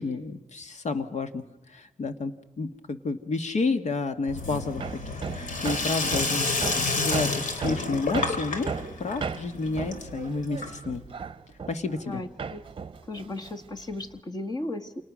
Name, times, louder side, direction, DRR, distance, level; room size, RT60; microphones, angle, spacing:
voice 1, 0.0-1.4 1.7-4.9 5.3-6.5 6.7-8.7 9.0-11.0 11.7-12.3, left 3 dB, 60° left, 8 dB, 1.7 m, -30 dB
Sink (filling or washing), 4.3-11.1, left 3 dB, 80° left, 3.3 m, -30 dB
Hammer, 4.8-12.1 12.4-14.2, right 5 dB, 40° right, 0.8 m, -35 dB
voice 2, 12.0-12.6 13.0-15.0, left 2 dB, 30° left, 5 dB, 1.7 m, -35 dB
29.0 x 27.5 x 6.3 m, 1.0 s
wide cardioid pair, 155°, 13 cm